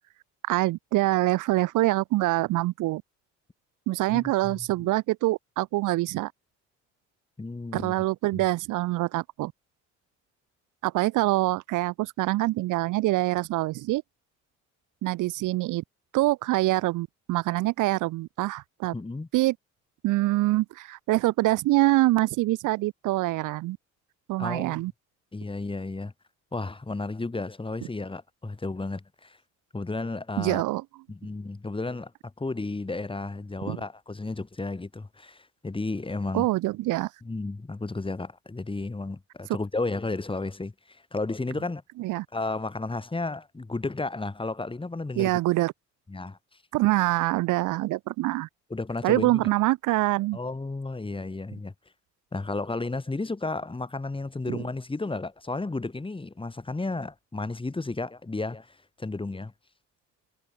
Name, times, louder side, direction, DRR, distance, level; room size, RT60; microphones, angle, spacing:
voice 1, 0.5-3.0 3.9-6.3 7.7-9.5 10.8-14.0 15.0-15.8 16.1-18.9 19.3-19.5 20.0-23.8 24.3-24.9 30.4-30.8 33.7-33.8 36.3-37.1 42.0-42.3 45.2-45.7 46.7-48.5 49.0-50.4 54.5-54.6, right 18 dB, 85° right, 0.7 m, -25 dB
voice 2, 4.1-4.7 7.4-7.9 8.3-8.4 18.9-19.3 24.4-24.8 25.3-26.1 26.5-29.4 29.7-30.6 31.1-36.5 37.2-41.8 42.3-45.4 46.1-46.4 48.7-49.4 50.3-51.7 52.3-59.5, left 3 dB, 15° left, 2.6 m, -33 dB
cardioid pair, 90°, 30 cm